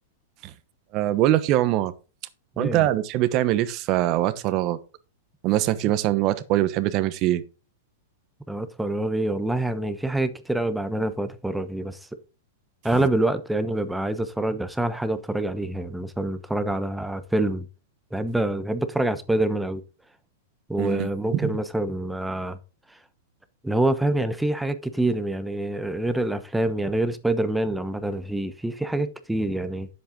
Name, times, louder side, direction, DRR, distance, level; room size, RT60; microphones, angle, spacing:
voice 1, 0.9-1.9 2.6-4.8 5.4-7.4 20.8-21.5, right 14 dB, 40° right, 1.0 m, -23 dB
voice 2, 2.6-2.9 8.5-12.0 12.8-17.7 18.1-19.8 20.7-22.6 23.6-29.9, right 1 dB, 5° right, 0.9 m, -26 dB
10.0 x 7.7 x 3.8 m
hypercardioid pair, 140°, 0 cm